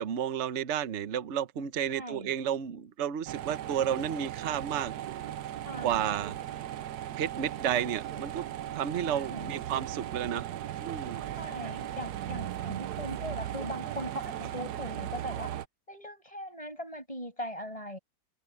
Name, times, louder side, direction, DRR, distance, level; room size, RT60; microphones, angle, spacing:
voice 1, 0.0-4.9 5.8-6.4 7.2-8.4 8.8-10.5 10.8-11.2, right 9 dB, 50° right, 1.0 m, -31 dB
voice 2, 1.9-2.3 5.6-6.1 9.1-9.6 11.4-15.5 15.9-18.0, equal, 15° left, 6.8 m, -40 dB
sound 1, 3.3-15.7, right 11 dB, 65° right, 1.2 m, -37 dB
omnidirectional pair, 2.0 m